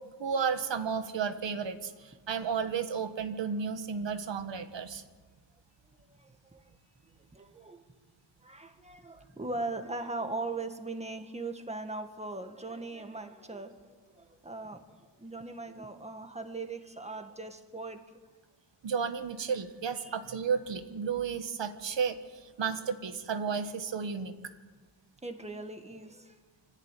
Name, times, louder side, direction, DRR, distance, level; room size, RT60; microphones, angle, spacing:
voice 1, 0.2-5.0 18.8-24.5, right 6 dB, 85° right, 9 dB, 1.7 m, -33 dB
voice 2, 6.1-6.6 7.3-7.8 8.4-14.8 15.2-18.2 20.0-20.2 25.2-26.4, right 3 dB, 15° right, 6 dB, 1.8 m, -39 dB
25.5 x 14.5 x 9.3 m, 1.4 s
wide cardioid pair, 145°, 43 cm